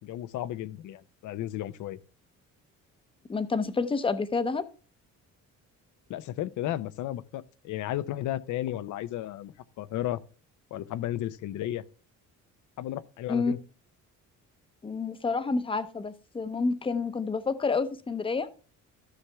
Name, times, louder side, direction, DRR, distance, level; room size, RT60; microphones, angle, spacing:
voice 1, 0.0-2.0 6.1-10.2 10.7-11.8 12.8-13.6, left 13 dB, 70° left, 0.7 m, -34 dB
voice 2, 3.3-4.6 13.3-13.5 14.8-18.5, left 4 dB, 15° left, 0.7 m, -29 dB
13.0 x 6.9 x 3.4 m
cardioid pair, 165°, 31 cm